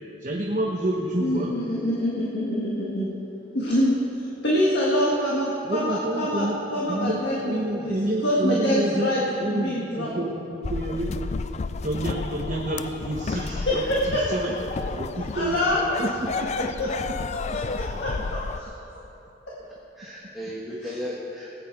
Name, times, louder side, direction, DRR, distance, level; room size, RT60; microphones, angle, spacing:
voice 1, 0.2-1.5 5.6-6.6 6.9-9.1 9.4-11.2 11.8-14.6 14.9-15.6 16.0-16.5 17.5-17.6, right 1 dB, 40° right, -2 dB, 1.0 m, -28 dB
voice 2, 1.2-3.1 3.5-4.0 4.4-6.5 6.7-7.9 8.2-10.2 13.3-14.2 15.3-15.8 16.8-16.9 17.8-18.7 20.8-20.9, equal, 65° left, -5 dB, 1.8 m, -25 dB
sound 1, 10.6-18.6, left 4 dB, 35° left, 0.3 m, -31 dB
voice 3, 19.6-21.5, left 1 dB, ahead, -6 dB, 1.3 m, -36 dB
19.0 x 8.8 x 4.7 m, 3.0 s
head